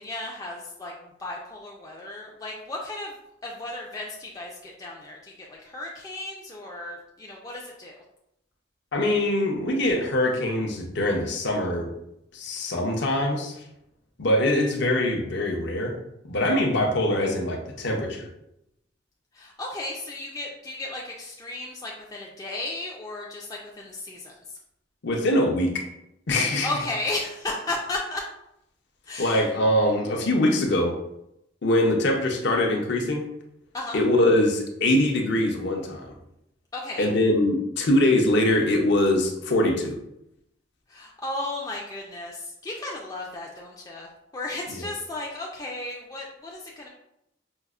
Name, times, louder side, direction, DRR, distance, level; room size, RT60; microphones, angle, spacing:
voice 1, 0.0-3.2 3.4-8.0 19.3-24.6 26.6-28.2 29.0-29.5 33.7-34.0 36.7-37.1 40.9-46.9, left 2 dB, 20° left, -2 dB, 0.3 m, -34 dB
voice 2, 8.9-11.9 12.3-13.6 14.2-16.0 16.2-18.3 25.0-25.8 26.3-26.8 29.2-30.9 31.6-33.2 33.9-36.1 37.0-40.0, left 1 dB, 60° left, 2 dB, 0.6 m, -23 dB
5.3 x 2.0 x 2.3 m, 0.82 s
head